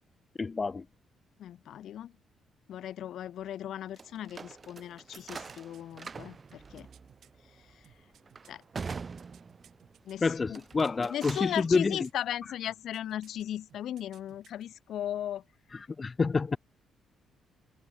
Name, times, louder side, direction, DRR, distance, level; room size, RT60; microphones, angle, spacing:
voice 1, 0.4-0.8 10.2-12.0 16.0-16.6, left 4 dB, 30° left, 1.1 m, -28 dB
voice 2, 1.4-2.1 2.7-6.9 7.7-7.8 8.4-8.6 10.0-10.6 11.1-15.4, left 11 dB, 70° left, 2.3 m, -37 dB
sound 1, 4.0-10.0 10.5-11.7, right 5 dB, 35° right, 2.1 m, -44 dB
sound 2, 5.4-7.3 7.8-11.0 11.3-12.2 12.7-13.4 13.7-14.6 14.9-15.0, right 10 dB, 70° right, 5.5 m, -60 dB
cardioid pair, 90°, 0 cm